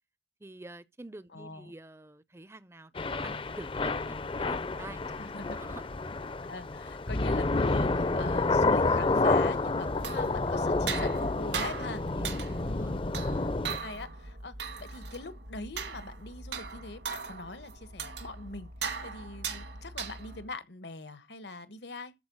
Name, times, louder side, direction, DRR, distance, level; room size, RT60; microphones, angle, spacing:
voice 1, 0.4-5.0 5.5-5.9 12.1-13.0, right 2 dB, 15° right, 0.5 m, -47 dB
voice 2, 1.3-1.7 5.2-5.6 6.5-12.0 12.6-13.0 13.6-18.7 19.0-22.1, left 2 dB, 70° left, 1.3 m, -42 dB
Thunder / Rain, 3.0-13.8, left 3 dB, 30° left, 0.6 m, -29 dB
sound 1, 9.8-20.5, right 5 dB, 80° right, 1.9 m, -39 dB
13.5 x 4.6 x 6.1 m
head